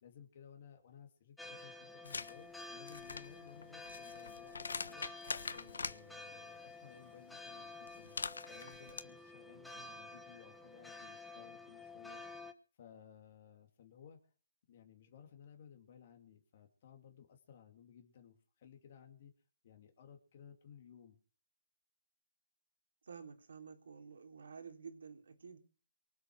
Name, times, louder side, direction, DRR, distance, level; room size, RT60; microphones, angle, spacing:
voice 1, 0.0-5.1 5.5-8.2 8.4-12.2 12.8-14.2 14.7-19.3 19.6-21.2, left 8 dB, 45° left, 4 dB, 2.7 m, -58 dB
sound 1, 1.4-12.5, left 3 dB, ahead, 1.1 m, -51 dB
sound 2, 2.0-2.3 2.8-6.0 7.9-9.0, left 4 dB, 85° left, 1.3 m, -43 dB
voice 2, 23.0-25.6, right 6 dB, 70° right, 5 dB, 3.9 m, -51 dB
24.0 x 7.9 x 6.3 m, 0.39 s
hypercardioid pair, 160°, 0 cm